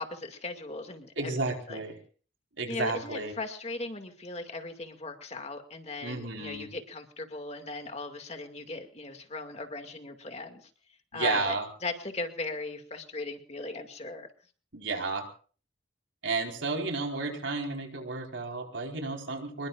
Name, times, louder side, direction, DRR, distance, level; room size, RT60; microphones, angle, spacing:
voice 1, 0.0-1.3 1.7-1.8 2.7-10.7 11.1-14.3, left 3 dB, 35° left, 6 dB, 2.3 m, -38 dB
voice 2, 1.2-2.0 2.6-3.3 6.0-6.7 11.1-11.6 14.7-15.3 16.2-19.7, right 3 dB, 90° right, 3 dB, 4.5 m, -32 dB
25.5 x 22.0 x 2.5 m, 0.40 s
head